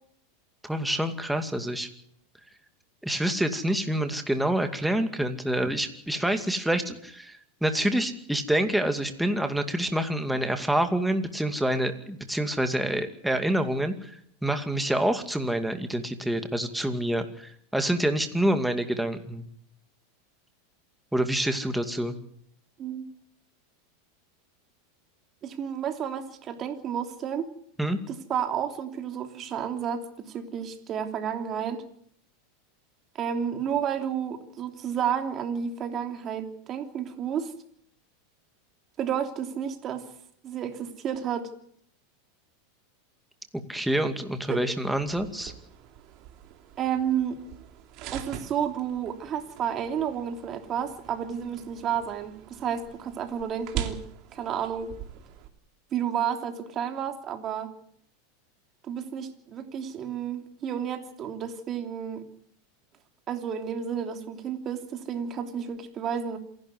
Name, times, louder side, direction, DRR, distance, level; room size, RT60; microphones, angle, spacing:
voice 1, 0.6-1.9 3.0-19.4 21.1-22.2 27.8-28.0 43.5-45.5, right 1 dB, 5° right, 7 dB, 2.4 m, -27 dB
voice 2, 25.4-27.5 28.1-31.8 33.1-37.5 39.0-40.1 40.4-41.5 44.5-44.6 46.8-47.4 48.1-54.0 54.3-54.9 55.9-57.7 58.9-62.2 63.3-66.4, right 8 dB, 35° right, 6 dB, 3.1 m, -31 dB
sound 1, 44.9-55.5, right 11 dB, 50° right, 3.0 m, -42 dB
27.0 x 12.0 x 9.5 m, 0.66 s
supercardioid pair, 125°, 0 cm